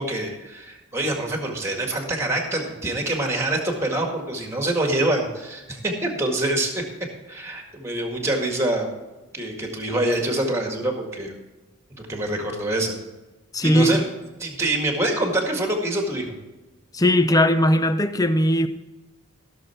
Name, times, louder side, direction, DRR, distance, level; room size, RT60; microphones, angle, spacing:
voice 1, 0.0-6.8 7.3-8.9 9.3-11.3 12.0-12.9 13.6-14.1 14.4-16.3, right 1 dB, 10° right, 1.8 m, -25 dB
voice 2, 13.5-14.0 16.9-18.7, left 1 dB, 15° left, 0.5 m, -18 dB
16.0 x 6.7 x 4.5 m
head